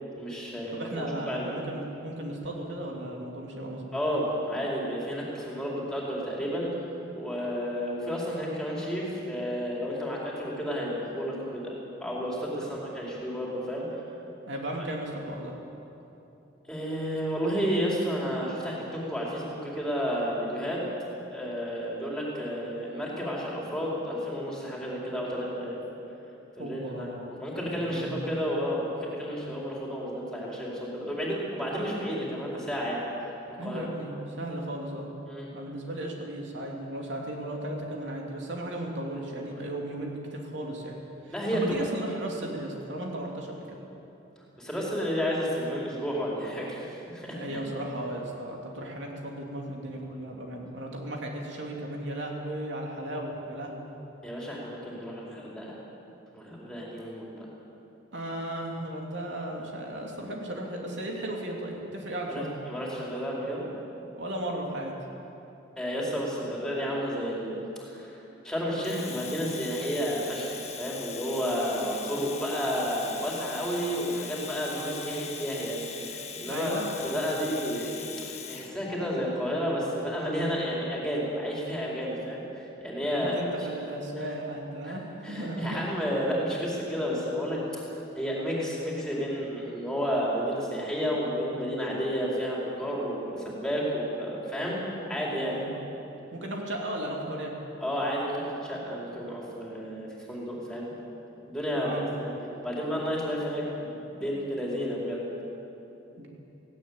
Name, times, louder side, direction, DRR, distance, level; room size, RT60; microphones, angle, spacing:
voice 1, 0.2-1.5 3.9-6.7 7.1-11.7 12.0-13.8 16.7-20.8 21.3-25.8 26.6-27.1 27.4-33.0 33.5-33.8 35.3-35.5 41.3-41.9 44.6-47.6 54.2-55.8 56.3-57.5 62.3-63.7 65.8-67.5 67.8-83.4 84.2-84.3 84.9-85.0 85.2-87.9 88.1-94.8 95.1-95.6 97.8-100.9 101.5-102.3 102.6-105.2, equal, 5° left, -5 dB, 4.6 m, -31 dB
voice 2, 0.7-4.0 12.6-12.7 14.5-15.5 26.6-27.3 27.8-28.2 33.6-35.1 35.5-41.0 41.2-43.8 47.3-53.9 58.1-62.5 64.2-64.9 76.5-76.9 83.0-85.9 95.5-95.8 96.3-97.5 101.8-102.0 106.2-106.3, right 1 dB, 70° right, -1 dB, 3.0 m, -35 dB
Domestic sounds home sounds, 68.8-78.7, left 7 dB, 35° left, 1.4 m, -41 dB
18.0 x 17.5 x 8.8 m, 2.9 s
head